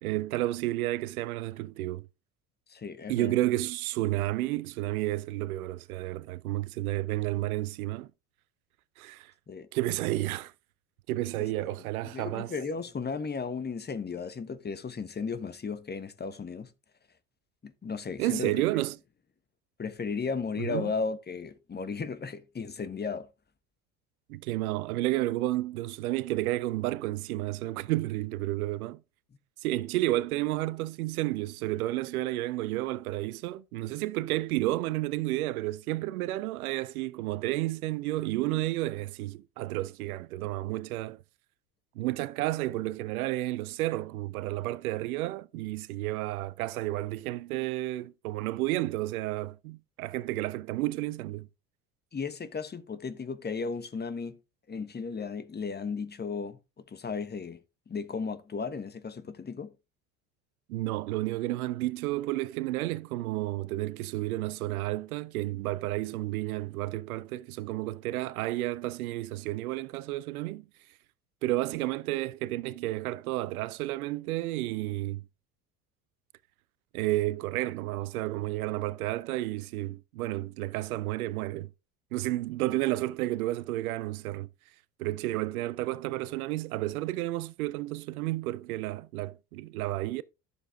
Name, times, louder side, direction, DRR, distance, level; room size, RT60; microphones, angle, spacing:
voice 1, 0.0-2.1 3.1-8.1 9.0-9.3 9.7-10.5 11.1-12.5 18.2-19.0 20.6-20.9 24.3-29.0 29.6-41.2 42.0-51.5 60.7-70.6 71.4-75.2 76.9-81.7 82.1-84.5 85.0-90.2, right 17 dB, 70° right, 0.6 m, -31 dB
voice 2, 2.7-3.4 9.5-9.7 11.4-11.7 12.1-16.7 17.6-18.6 19.8-23.3 52.1-54.4 54.7-57.6 57.9-59.7, left 5 dB, 20° left, 1.4 m, -35 dB
11.5 x 6.9 x 3.7 m
figure-of-eight pair, 65°, 46 cm